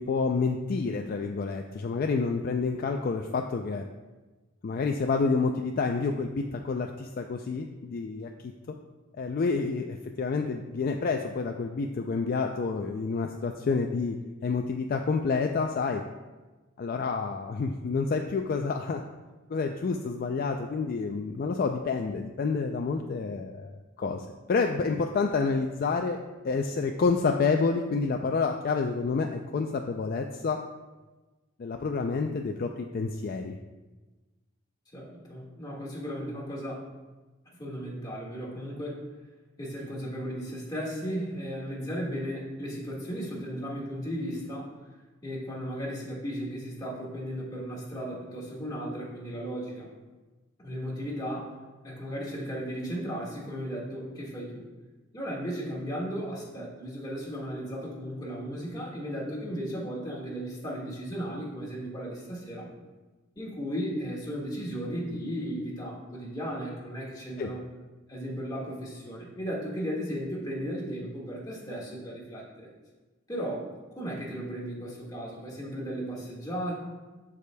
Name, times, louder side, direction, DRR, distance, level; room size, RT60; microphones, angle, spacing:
voice 1, 0.0-3.8 4.6-8.8 9.2-16.0 16.8-19.0 19.5-23.7 24.0-26.2 26.4-30.6 31.6-33.5 67.4-67.5, left 4 dB, 45° left, 4 dB, 0.3 m, -29 dB
voice 2, 34.9-36.8 37.6-38.9 39.6-44.7 45.2-49.9 50.6-51.5 51.8-54.7 55.1-62.7 63.3-67.6 68.1-72.7 73.3-73.7 74.0-76.8, equal, 20° left, -4 dB, 1.6 m, -35 dB
13.5 x 4.9 x 2.2 m, 1.2 s
head